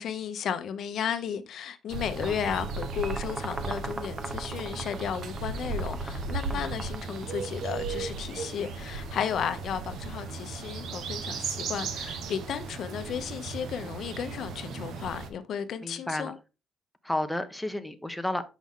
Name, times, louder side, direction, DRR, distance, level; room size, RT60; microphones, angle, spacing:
voice 1, 0.0-16.4, left 8 dB, 65° left, 0.8 m, -34 dB
sound 1, 1.9-15.3, right 4 dB, 75° right, 1.1 m, -36 dB
sound 2, 2.0-7.8, right 2 dB, 25° right, 0.6 m, -40 dB
voice 2, 15.8-16.3 17.0-18.4, left 1 dB, 5° left, 0.9 m, -32 dB
6.0 x 5.6 x 3.7 m
cardioid pair, 90°, 0 cm